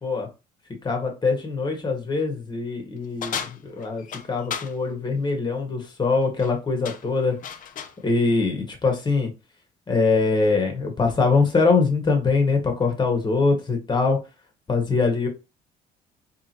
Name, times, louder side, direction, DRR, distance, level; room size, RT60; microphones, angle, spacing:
voice 1, 0.8-7.4 8.0-9.3 9.9-14.2 14.7-15.3, left 4 dB, 25° left, 3 dB, 1.7 m, -23 dB
sound 1, 3.2-4.8 6.2-6.5 6.8-8.0, left 8 dB, 50° left, 0.7 m, -34 dB
5.0 x 3.5 x 3.0 m, 0.27 s
cardioid pair, 110°, 17 cm